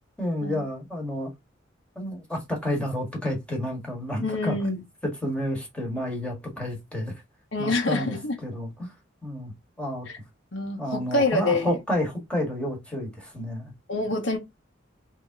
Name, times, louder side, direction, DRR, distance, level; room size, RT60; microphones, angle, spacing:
voice 1, 0.2-1.3 1.9-4.6 5.2-7.1 7.6-8.2 8.4-8.9 9.2-9.5 9.8-10.1 10.8-13.7, left 1 dB, 5° left, 1.6 m, -30 dB
voice 2, 4.2-4.8 7.5-8.4 10.1-10.2 10.5-11.8 13.9-14.4, left 2 dB, 65° left, 1.1 m, -26 dB
3.5 x 2.9 x 3.5 m
head